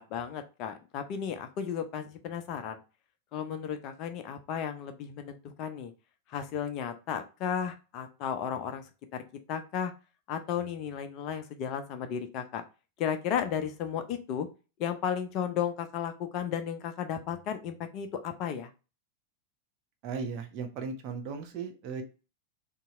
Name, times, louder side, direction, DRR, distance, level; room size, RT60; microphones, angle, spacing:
voice 1, 0.0-2.8 3.3-5.9 6.3-9.2 9.5-9.9 10.3-12.6 13.0-14.5 14.8-18.7, left 8 dB, 40° left, 8 dB, 0.6 m, -34 dB
voice 2, 20.0-22.0, right 5 dB, 40° right, 4 dB, 1.0 m, -36 dB
3.7 x 2.8 x 4.2 m, 0.32 s
figure-of-eight pair, 90°, 0 cm